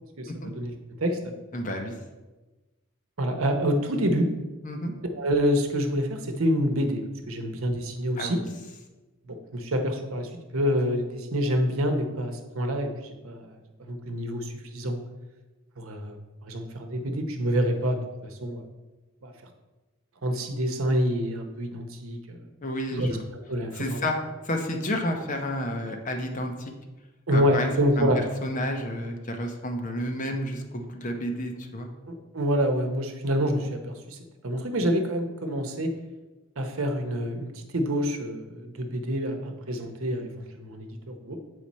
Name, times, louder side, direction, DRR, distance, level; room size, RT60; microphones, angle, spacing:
voice 1, 0.2-0.7 1.0-1.3 3.2-4.3 5.1-8.4 9.3-13.6 13.9-15.0 15.8-16.2 16.4-18.0 18.4-18.6 19.2-19.3 20.2-22.4 22.9-23.2 23.5-24.1 27.3-28.2 32.1-34.2 34.4-35.9 36.6-41.4, equal, 80° right, 6 dB, 0.9 m, -27 dB
voice 2, 1.5-1.9 4.6-4.9 8.2-8.3 22.6-23.2 23.7-24.2 24.4-26.7 27.3-27.7 28.0-28.1 28.4-31.9, left 1 dB, 40° left, 4 dB, 0.8 m, -30 dB
7.6 x 4.9 x 4.2 m, 1.2 s
head